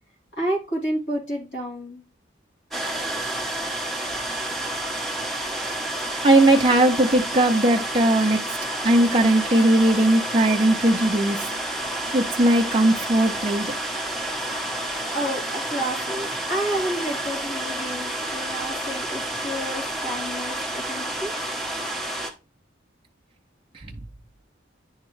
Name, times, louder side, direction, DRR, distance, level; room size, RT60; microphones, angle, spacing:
voice 1, 0.4-2.0 14.6-21.3, right 1 dB, 70° left, -4 dB, 3.1 m, -30 dB
sound 1, 2.7-22.3, right 1 dB, ahead, 0.8 m, -30 dB
voice 2, 6.2-8.4 8.8-11.4 12.1-13.7, right 1 dB, 30° right, 1 dB, 0.5 m, -18 dB
9.7 x 3.6 x 3.1 m, 0.32 s
head